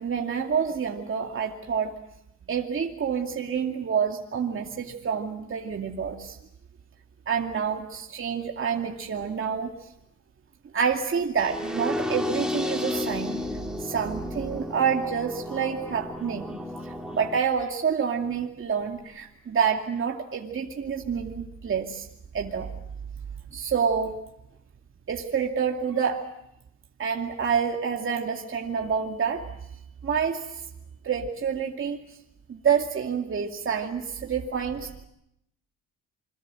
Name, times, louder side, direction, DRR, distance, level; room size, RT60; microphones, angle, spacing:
voice 1, 0.0-1.9 2.5-6.4 7.3-9.9 10.7-13.4 13.8-16.6 16.8-22.1 22.3-22.7 23.5-24.2 25.1-26.2 27.0-29.5 30.0-30.6 31.0-32.0 32.5-35.1, right 7 dB, 45° right, 1 dB, 2.5 m, -28 dB
sound 1, 11.4-17.4, left 1 dB, ahead, 3.5 m, -32 dB
28.0 x 22.5 x 7.8 m, 0.80 s
cardioid pair, 90°, 30 cm